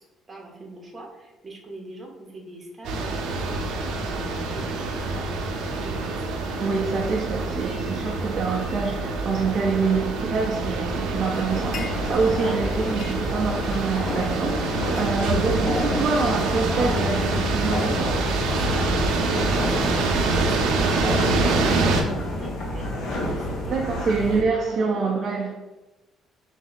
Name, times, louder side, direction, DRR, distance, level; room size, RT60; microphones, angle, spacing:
voice 1, 0.3-6.3 18.5-24.3 24.7-24.9, right 2 dB, 20° right, -1 dB, 0.9 m, -42 dB
sound 1, 2.8-22.0, right 3 dB, 80° right, 0.6 m, -26 dB
voice 2, 6.6-18.1 23.7-25.5, right 4 dB, 40° right, -2 dB, 0.5 m, -26 dB
sound 2, 11.3-12.4 12.7-14.0 14.4-17.1, left 5 dB, 50° left, 0.4 m, -43 dB
sound 3, 11.5-24.4, left 1 dB, 70° left, 1.0 m, -30 dB
3.8 x 2.7 x 4.0 m, 1.1 s
cardioid pair, 135°, 0 cm